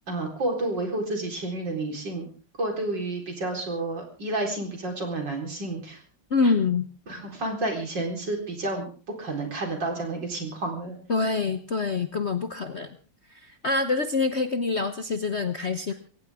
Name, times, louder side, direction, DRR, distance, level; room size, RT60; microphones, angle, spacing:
voice 1, 0.1-2.3 2.6-6.0 6.4-6.5 7.1-8.9 9.2-11.0, right 2 dB, 60° right, 2 dB, 4.8 m, -30 dB
voice 2, 6.3-6.9 11.1-13.0 13.3-15.9, left 4 dB, 45° left, 8 dB, 1.0 m, -26 dB
22.5 x 18.0 x 3.6 m, 0.38 s
omnidirectional pair, 2.2 m